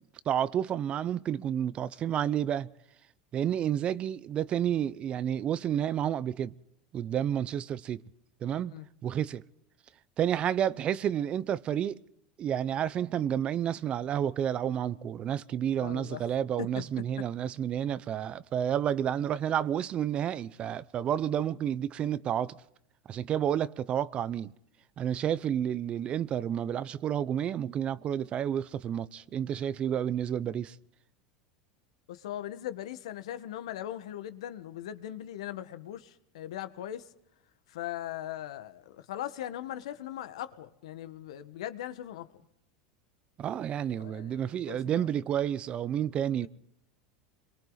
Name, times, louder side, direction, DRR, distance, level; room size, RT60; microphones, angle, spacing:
voice 1, 0.3-2.7 3.3-6.5 6.9-8.0 8.4-8.7 9.0-9.4 10.2-12.0 12.4-22.6 23.1-24.5 25.0-30.8 43.4-46.5, right 9 dB, 35° right, 0.8 m, -30 dB
voice 2, 15.8-16.2 16.6-16.8 23.5-23.6 32.1-37.1 37.7-42.4 43.9-45.1 46.4-46.5, left 12 dB, 85° left, 1.5 m, -40 dB
28.0 x 23.0 x 4.1 m
supercardioid pair, 115°, 3 cm